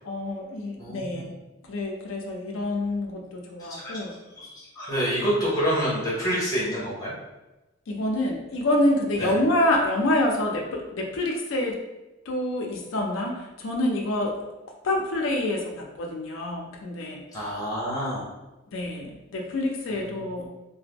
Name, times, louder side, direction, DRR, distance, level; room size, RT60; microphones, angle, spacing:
voice 1, 0.0-1.3 1.7-4.1 7.9-11.8 12.3-14.3 14.8-17.2 18.7-20.4, left 1 dB, 85° left, 0 dB, 0.5 m, -27 dB
voice 2, 0.8-1.2 3.6-4.1 4.4-7.1 9.2-9.3 17.3-18.2 19.9-20.3, equal, 20° left, -7 dB, 1.1 m, -28 dB
2.8 x 2.1 x 3.4 m, 1.0 s
head